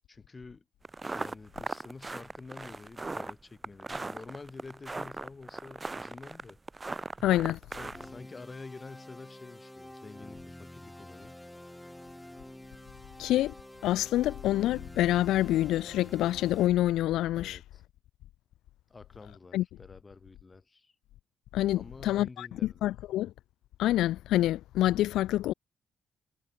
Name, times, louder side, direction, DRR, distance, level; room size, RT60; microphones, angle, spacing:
voice 1, 0.1-0.6 1.1-6.6 7.7-11.4 17.4-17.8 18.9-20.9 21.7-22.9, left 3 dB, 25° left, 3.2 m, -48 dB
sound 1, 0.8-8.1, right 3 dB, 20° right, 0.3 m, -38 dB
voice 2, 7.2-7.6 13.2-13.5 13.8-17.6 19.5-19.6 21.5-23.3 23.8-25.5, left 14 dB, 85° left, 0.3 m, -27 dB
sound 2, 7.9-16.7, left 1 dB, 5° left, 1.2 m, -48 dB
cardioid pair, 90°, 0 cm